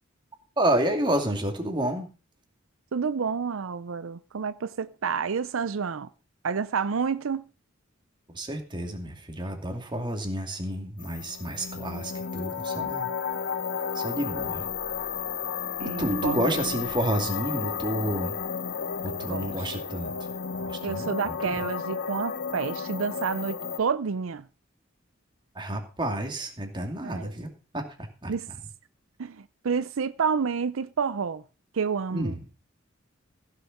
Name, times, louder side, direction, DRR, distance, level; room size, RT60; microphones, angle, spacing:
voice 1, 0.6-2.1 8.3-13.1 14.0-14.6 16.0-18.3 19.0-20.1 20.6-21.1 21.5-21.6 25.6-27.5 27.7-27.8 28.2-28.3 32.1-32.4, right 1 dB, 25° right, 2.6 m, -29 dB
voice 2, 2.9-6.1 6.4-7.4 15.8-16.5 19.1-19.7 20.8-24.5 27.0-27.3 28.3-28.5 29.2-31.4 31.7-32.4, right 6 dB, 85° right, 0.6 m, -29 dB
sound 1, 11.0-23.8, left 6 dB, 60° left, 0.9 m, -33 dB
15.5 x 6.7 x 5.9 m
head